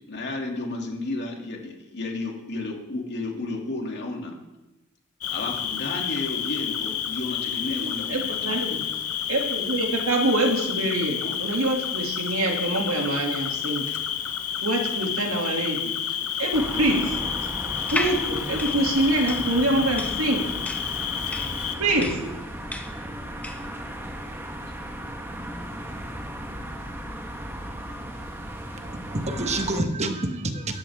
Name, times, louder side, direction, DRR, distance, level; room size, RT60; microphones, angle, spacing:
voice 1, 0.1-4.4 5.3-8.6 11.2-11.4, left 2 dB, 55° left, 0 dB, 2.7 m, -32 dB
Cricket, 5.2-21.8, left 9 dB, 85° left, 1.0 m, -30 dB
voice 2, 7.8-8.8 9.3-13.8 14.6-15.9 16.4-17.1 17.9-20.4 21.8-22.1, right 1 dB, 80° right, 1 dB, 2.6 m, -25 dB
sound 1, 16.5-29.8, equal, 10° right, 1.4 m, -36 dB
sound 2, 17.8-23.7, left 1 dB, 5° left, 1.1 m, -34 dB
voice 3, 28.8-30.8, right 2 dB, 30° right, 6 dB, 1.2 m, -28 dB
16.5 x 13.5 x 3.6 m, 1.0 s
head